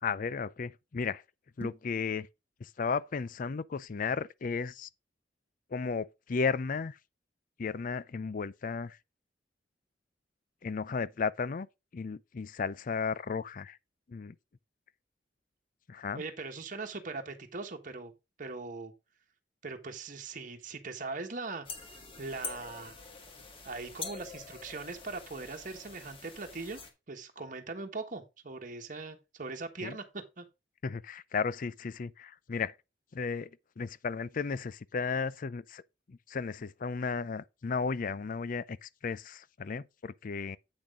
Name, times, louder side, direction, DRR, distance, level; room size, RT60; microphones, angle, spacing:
voice 1, 0.0-1.2 1.6-2.3 2.6-4.9 5.7-7.0 7.6-9.0 10.6-11.7 11.9-13.8 14.1-14.3 15.9-16.2 29.8-30.0 30.8-32.8 33.1-33.5 33.8-35.8 36.1-40.6, left 5 dB, 50° left, 0.4 m, -34 dB
sound 1, 1.5-2.0, right 1 dB, 10° left, 1.5 m, -44 dB
voice 2, 16.1-18.1 18.4-18.9 19.6-23.0 23.6-26.8 27.1-30.5, right 3 dB, 45° right, 1.3 m, -40 dB
sound 2, 21.6-26.9, left 5 dB, 30° left, 1.7 m, -45 dB
8.6 x 6.1 x 3.7 m
head